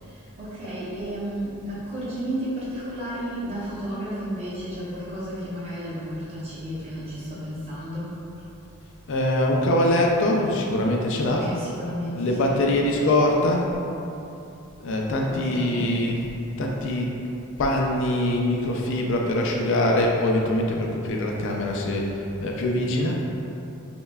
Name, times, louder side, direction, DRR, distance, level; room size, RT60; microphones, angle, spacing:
voice 1, 0.0-8.2 11.2-12.7 15.3-16.0, equal, 30° right, -9 dB, 0.9 m, -33 dB
voice 2, 9.1-11.5 12.1-13.7 14.8-16.2 16.6-17.1 17.6-23.2, left 1 dB, 55° left, -1 dB, 0.3 m, -23 dB
5.3 x 2.2 x 2.3 m, 2.8 s
head